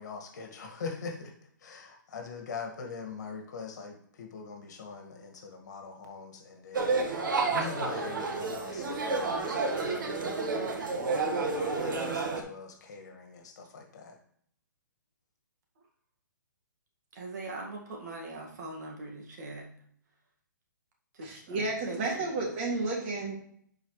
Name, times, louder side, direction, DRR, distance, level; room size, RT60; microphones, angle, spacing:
voice 1, 0.0-1.3 1.6-7.0 7.5-10.5 11.1-14.2, left 5 dB, 60° left, 3 dB, 2.0 m, -43 dB
sound 1, 6.7-12.4, right 3 dB, 75° right, 1.6 m, -30 dB
voice 2, 17.1-19.7 21.1-22.4, right 2 dB, 55° right, 0 dB, 2.0 m, -42 dB
voice 3, 21.2-23.4, right 2 dB, 35° right, -2 dB, 2.6 m, -32 dB
10.0 x 4.8 x 3.3 m, 0.63 s
hypercardioid pair, 150°, 11 cm